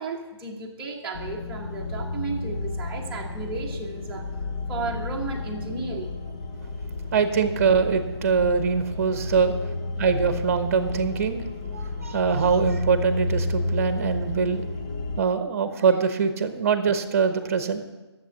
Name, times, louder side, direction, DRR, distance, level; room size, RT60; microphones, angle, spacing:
voice 1, 0.0-4.3 4.7-6.2, right 3 dB, 5° right, -4 dB, 1.1 m, -34 dB
sound 1, 1.1-15.2, left 2 dB, 15° left, 0.4 m, -31 dB
voice 2, 7.1-9.5 10.0-11.4 11.7-14.6 15.2-17.8, right 6 dB, 30° right, 9 dB, 1.0 m, -23 dB
11.0 x 7.5 x 7.3 m, 1.1 s
figure-of-eight pair, 160°, 15 cm